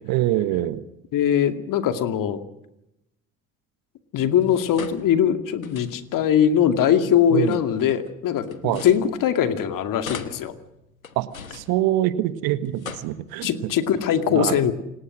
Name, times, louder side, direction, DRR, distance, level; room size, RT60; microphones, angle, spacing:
voice 1, 0.1-0.8 7.3-7.6 8.6-8.8 11.1-13.7 14.3-14.6, right 14 dB, 60° right, 13 dB, 1.6 m, -24 dB
voice 2, 1.1-2.4 4.1-10.5 13.4-14.7, left 9 dB, 50° left, 9 dB, 2.3 m, -21 dB
sound 1, 4.4-6.3 7.3-9.6 10.0-12.3 12.6-13.7, left 6 dB, 90° left, 1.3 m, -41 dB
28.0 x 19.0 x 6.4 m, 0.87 s
figure-of-eight pair, 55°, 41 cm